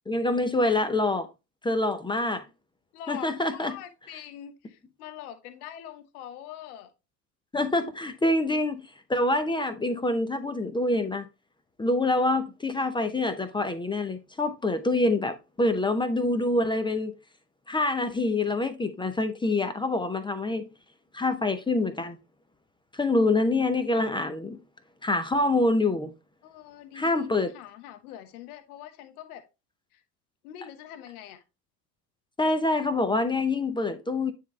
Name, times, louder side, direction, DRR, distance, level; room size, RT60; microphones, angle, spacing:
voice 1, 0.1-1.3 1.6-2.4 3.1-3.8 7.5-11.3 11.8-17.1 17.7-20.7 21.1-22.2 22.9-24.6 25.0-26.1 26.9-27.5 32.4-34.3, left 2 dB, 10° left, 0.6 m, -26 dB
voice 2, 2.9-6.9 26.4-29.5 29.9-30.0 30.4-31.4, left 11 dB, 60° left, 1.2 m, -44 dB
9.2 x 3.6 x 3.2 m
figure-of-eight pair, 70°, 50 cm